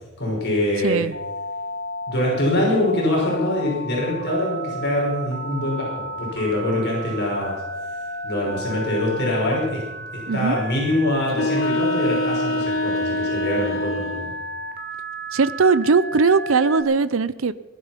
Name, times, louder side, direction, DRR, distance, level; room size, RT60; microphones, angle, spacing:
voice 1, 0.2-1.0 2.1-7.6 8.2-9.8 10.1-14.3, left 1 dB, 55° left, -3 dB, 5.5 m, -24 dB
Telephone, 1.1-16.8, right 1 dB, 50° right, 2.2 m, -33 dB
sound 1, 11.3-14.3, left 2 dB, 70° left, 1.0 m, -24 dB
voice 2, 15.3-17.5, right 4 dB, 70° right, 16 dB, 0.6 m, -19 dB
19.5 x 11.5 x 5.8 m, 1.1 s
head